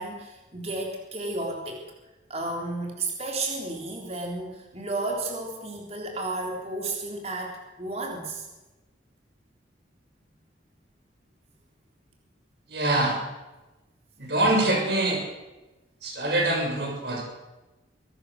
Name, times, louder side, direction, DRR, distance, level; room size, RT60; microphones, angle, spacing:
voice 1, 0.0-1.8 2.3-8.5, right 2 dB, 35° right, 1 dB, 3.6 m, -32 dB
voice 2, 12.7-13.2 14.2-15.2 16.0-17.2, right 1 dB, 55° right, 0 dB, 6.8 m, -24 dB
24.0 x 18.5 x 6.6 m, 1.1 s
head